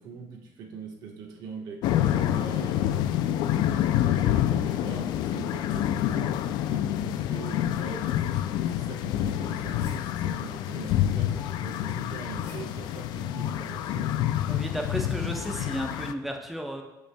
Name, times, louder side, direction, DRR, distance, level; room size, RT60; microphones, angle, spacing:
voice 1, 0.0-3.1 3.9-14.2, right 5 dB, 75° right, 1 dB, 1.3 m, -42 dB
sound 1, 1.8-16.1, left 11 dB, 85° left, 0.3 m, -27 dB
sound 2, 9.2-10.7 11.9-13.0, left 3 dB, 50° left, 1.9 m, -48 dB
voice 2, 14.5-16.8, equal, ahead, 2 dB, 0.6 m, -33 dB
15.5 x 5.3 x 2.3 m, 1.0 s
cardioid pair, 170°, 7 cm